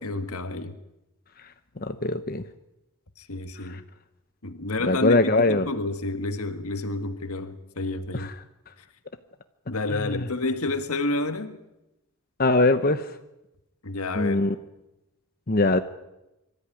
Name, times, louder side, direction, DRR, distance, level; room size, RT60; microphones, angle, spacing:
voice 1, 0.0-0.7 3.2-3.8 4.4-8.3 9.7-11.6 13.8-14.4, left 2 dB, 80° left, 1.8 m, -30 dB
voice 2, 1.8-2.4 4.8-5.6 10.0-10.2 12.4-13.0 14.2-14.5 15.5-15.8, left 2 dB, 40° left, 0.9 m, -21 dB
25.0 x 13.5 x 9.9 m
head